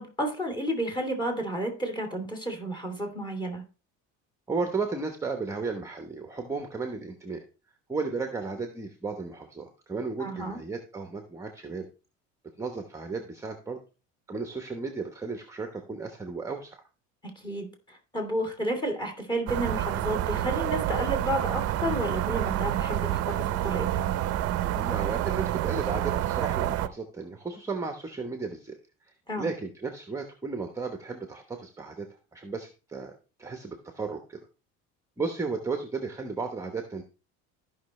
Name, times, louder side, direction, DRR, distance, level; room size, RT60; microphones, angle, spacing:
voice 1, 0.0-3.6 10.2-10.6 17.3-24.1 29.3-29.5, right 1 dB, 15° left, 3 dB, 2.9 m, -31 dB
voice 2, 4.5-7.4 7.9-11.9 12.6-13.8 14.3-16.8 24.7-28.8 29.0-34.4 35.2-37.0, right 4 dB, 10° right, 5 dB, 1.0 m, -34 dB
sound 1, 19.5-26.9, right 13 dB, 55° right, 0.6 m, -28 dB
14.0 x 5.7 x 3.2 m, 0.33 s
cardioid pair, 130°, 30 cm